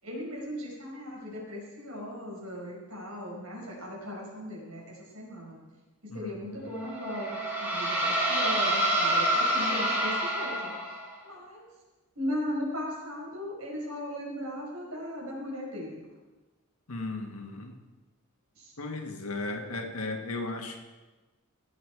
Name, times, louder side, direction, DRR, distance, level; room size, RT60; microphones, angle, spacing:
voice 1, 0.0-5.6 6.1-11.7 12.2-16.0 18.6-18.7, left 1 dB, 85° right, -3 dB, 5.2 m, -37 dB
voice 2, 6.1-6.6 16.9-17.8 18.8-20.8, left 2 dB, 80° left, 3 dB, 1.7 m, -36 dB
sound 1, 6.8-11.1, right 1 dB, 10° right, 3.1 m, -27 dB
17.5 x 7.9 x 4.8 m, 1.2 s
head